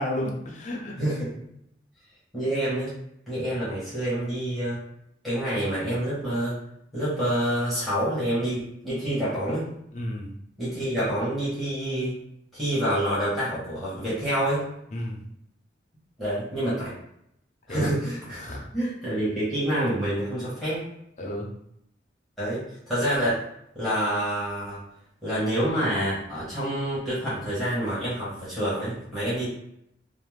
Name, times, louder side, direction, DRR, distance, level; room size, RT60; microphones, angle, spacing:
voice 1, 0.0-1.0 9.9-10.3 14.9-15.2 17.7-17.9 18.4-18.6 21.2-21.5, left 1 dB, 40° left, -1 dB, 0.5 m, -31 dB
voice 2, 1.0-1.4 2.3-2.9 3.3-4.8 5.2-6.6 6.9-9.7 10.6-12.1 12.5-14.7 16.2-16.9 17.7-18.4 18.7-20.8 22.4-23.4 23.7-24.8 25.2-29.5, right 1 dB, ahead, -11 dB, 0.9 m, -27 dB
2.4 x 2.0 x 3.1 m, 0.75 s
head